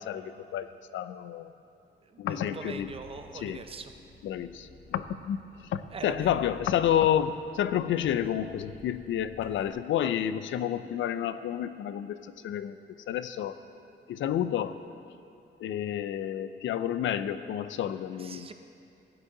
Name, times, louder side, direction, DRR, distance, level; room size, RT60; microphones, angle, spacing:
voice 1, 0.0-1.5 2.2-2.9 3.3-3.6 4.2-12.8 13.1-13.6 14.1-14.8 15.1-15.2 15.6-18.5, left 10 dB, 75° left, 12 dB, 0.4 m, -30 dB
voice 2, 2.0-3.9 5.9-6.3 18.2-18.5, right 5 dB, 30° right, 8 dB, 0.5 m, -42 dB
Engine, 2.6-9.7, left 4 dB, 40° left, 0.9 m, -52 dB
14.5 x 7.9 x 3.8 m, 2.5 s
wide cardioid pair, 170°, 20 cm